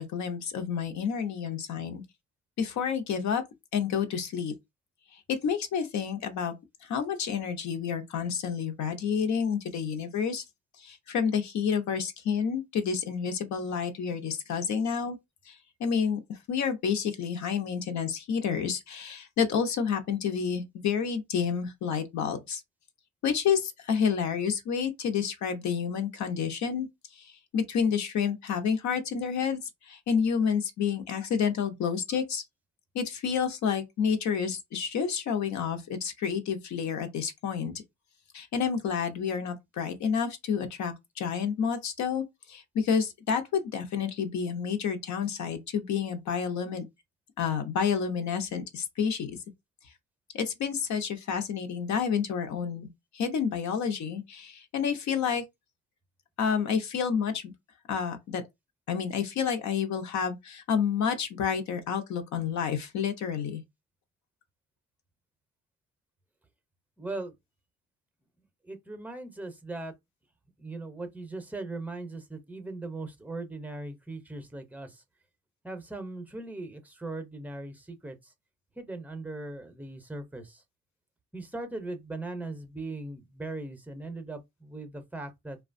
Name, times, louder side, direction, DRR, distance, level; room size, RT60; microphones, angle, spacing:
voice 1, 0.0-2.0 2.6-3.4 3.7-4.5 5.1-6.5 6.8-10.4 10.8-15.2 15.5-22.6 23.2-26.9 27.1-32.4 32.9-37.7 38.3-46.8 47.4-49.3 50.3-52.9 53.1-55.4 56.4-57.5 57.9-58.4 58.9-63.6, left 7 dB, 70° left, 0.8 m, -29 dB
voice 2, 67.0-67.3 68.6-69.9 70.6-75.0 75.6-78.2 78.8-80.6 81.3-85.6, right 2 dB, 5° right, 0.6 m, -39 dB
2.8 x 2.3 x 2.5 m
cardioid pair, 90°, 30 cm